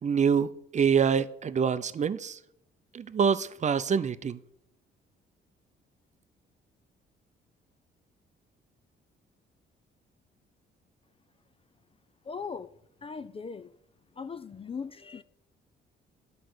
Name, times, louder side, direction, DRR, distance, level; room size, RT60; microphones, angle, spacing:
voice 1, 0.0-2.4 2.9-4.4, right 7 dB, 35° right, 0.6 m, -26 dB
voice 2, 12.2-12.7 13.0-13.7 14.2-15.2, left 5 dB, 30° left, 0.4 m, -39 dB
10.0 x 5.1 x 7.8 m
cardioid pair, 90°, 20 cm